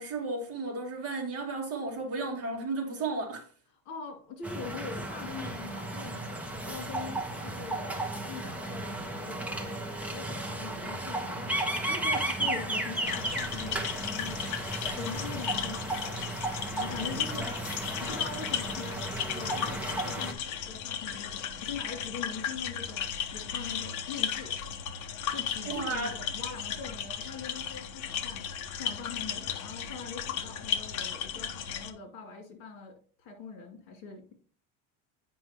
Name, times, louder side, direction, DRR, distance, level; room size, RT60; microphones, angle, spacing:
voice 1, 0.0-3.5 25.6-26.1, right 3 dB, 35° right, 1.6 m, -33 dB
voice 2, 3.8-7.9 8.2-9.8 10.1-11.6 11.9-14.5 15.0-17.5 18.0-24.6 25.3-34.3, left 5 dB, 65° left, 2.7 m, -42 dB
sound 1, 4.4-20.3, right 1 dB, 5° right, 0.4 m, -34 dB
sound 2, 13.0-31.9, left 8 dB, 45° left, 0.8 m, -35 dB
9.1 x 5.5 x 3.0 m
cardioid pair, 170°, 43 cm